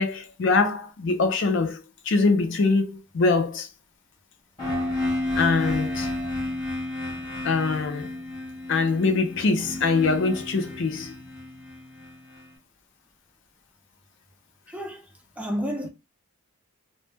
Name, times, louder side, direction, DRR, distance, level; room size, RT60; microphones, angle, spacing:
voice 1, 0.0-1.8 2.1-3.7 5.4-6.1 7.4-8.1 8.7-11.1, left 3 dB, 55° left, 0.5 m, -23 dB
sound 1, 4.6-12.4, left 1 dB, 20° left, 0.9 m, -31 dB
voice 2, 14.7-15.0 15.4-15.9, equal, 5° right, 0.3 m, -30 dB
2.1 x 2.1 x 3.2 m
head